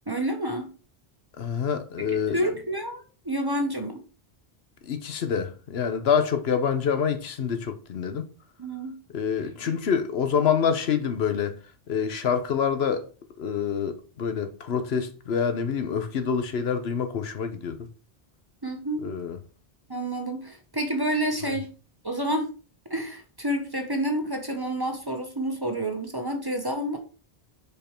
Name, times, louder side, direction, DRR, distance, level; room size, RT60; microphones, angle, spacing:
voice 1, 0.1-0.7 2.1-4.0 8.6-9.0 9.7-9.8 18.6-19.1 19.9-21.7 22.0-22.5 22.9-27.0, right 1 dB, 25° right, 0.8 m, -29 dB
voice 2, 1.4-2.4 4.8-8.3 9.1-11.5 11.9-13.0 13.4-17.9 19.0-19.4, left 7 dB, 75° left, 1.0 m, -26 dB
5.2 x 4.7 x 4.3 m
omnidirectional pair, 1.1 m